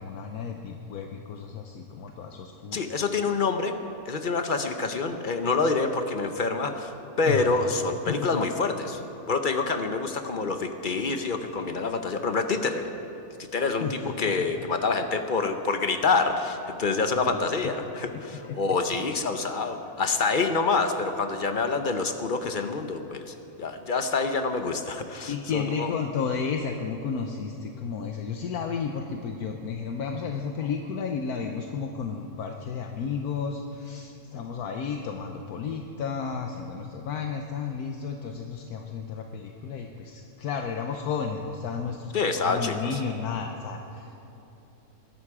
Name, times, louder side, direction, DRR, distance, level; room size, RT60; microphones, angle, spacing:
voice 1, 0.0-2.8 7.3-7.5 8.1-8.4 13.5-14.6 17.1-17.4 18.1-18.6 25.3-44.2, left 6 dB, 75° left, 3 dB, 1.3 m, -33 dB
voice 2, 2.7-3.7 4.1-9.0 9.3-12.9 13.4-25.9 42.1-42.7, left 4 dB, 40° left, 7 dB, 0.8 m, -27 dB
21.0 x 11.5 x 4.9 m, 3.0 s
omnidirectional pair, 1.6 m